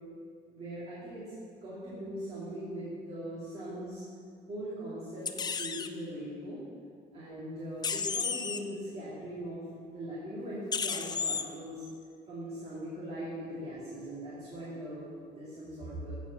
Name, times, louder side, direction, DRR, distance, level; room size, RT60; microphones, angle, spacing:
voice 1, 0.5-1.3 1.6-4.0 4.5-6.6 7.1-9.6 9.9-11.9 12.3-15.1 15.3-16.1, right 1 dB, 40° right, -9 dB, 2.5 m, -40 dB
sound 1, 5.3-5.9 7.8-8.6 10.7-11.4, left 5 dB, 25° left, 0.4 m, -32 dB
9.9 x 5.0 x 5.7 m, 2.3 s
cardioid pair, 110°, 17 cm